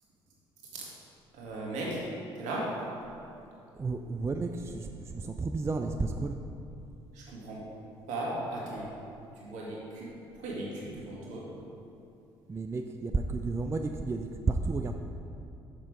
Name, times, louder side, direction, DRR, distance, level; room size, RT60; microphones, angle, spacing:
voice 1, 1.3-2.1 2.3-2.8 7.1-7.7 8.1-8.9 9.4-11.5, right 1 dB, 65° right, -4 dB, 1.8 m, -37 dB
voice 2, 3.7-6.4 12.5-14.9, right 3 dB, 20° right, 5 dB, 0.4 m, -32 dB
6.5 x 5.6 x 4.8 m, 2.7 s
figure-of-eight pair, 50°, 14 cm